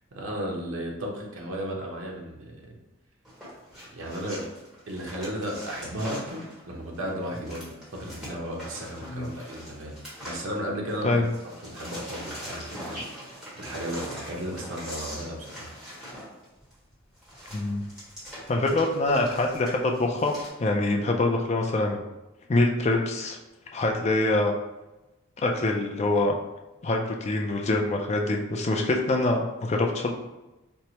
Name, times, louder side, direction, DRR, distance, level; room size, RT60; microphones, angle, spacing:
voice 1, 0.1-2.7 3.9-4.5 4.9-10.0 10.2-11.3 11.6-13.0 13.6-15.7 29.7-29.8, equal, 80° right, -1 dB, 0.7 m, -34 dB
sound 1, 3.2-11.0 11.2-20.5, equal, 5° right, 1.0 m, -42 dB
voice 2, 17.5-17.9 18.5-20.3 20.6-22.0 22.5-23.4 23.7-24.5 25.4-26.3 26.8-30.1, left 2 dB, 30° left, 2 dB, 0.3 m, -25 dB
4.4 x 2.0 x 2.8 m, 1.1 s
head